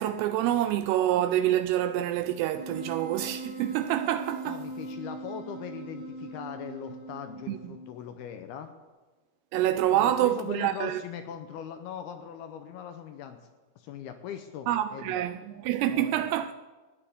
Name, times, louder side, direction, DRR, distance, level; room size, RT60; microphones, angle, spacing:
voice 1, 0.0-4.6 7.5-7.6 9.5-11.0 14.7-16.5, right 12 dB, 85° right, 2.4 m, -27 dB
Wind instrument woodwind instrument, 2.6-8.0, right 2 dB, 40° left, 4.7 m, -41 dB
voice 2, 4.5-8.7 9.9-13.4 13.8-15.2 15.8-16.3, left 9 dB, 80° left, 2.4 m, -40 dB
20.0 x 14.0 x 3.6 m
omnidirectional pair, 5.1 m